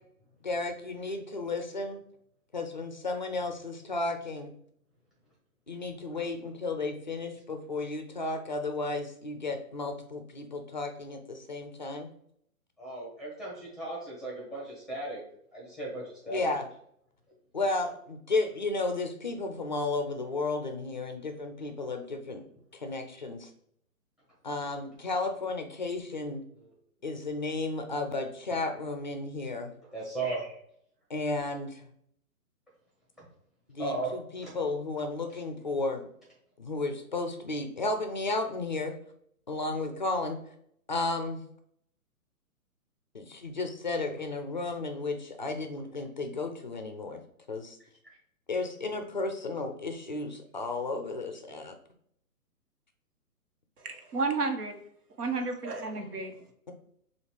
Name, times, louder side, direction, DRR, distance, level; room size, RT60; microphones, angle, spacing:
voice 1, 0.4-2.0 2.5-4.5 5.7-12.1 16.3-16.7 17.5-22.4 22.7-23.5 24.4-26.4 27.0-29.7 31.1-31.9 33.7-36.1 36.6-39.0 39.5-40.4 40.9-41.4 43.1-47.2 47.5-47.8 48.5-51.8, left 3 dB, 35° left, 6 dB, 0.4 m, -33 dB
voice 2, 12.8-15.2 15.5-16.5 29.9-30.6 33.2-33.3 33.8-34.1 34.4-34.5 55.9-56.0, right 2 dB, ahead, -4 dB, 0.7 m, -36 dB
voice 3, 53.8-54.7 55.2-56.4, right 3 dB, 80° right, 4 dB, 1.2 m, -31 dB
6.6 x 2.4 x 3.2 m, 0.68 s
hypercardioid pair, 145°, 46 cm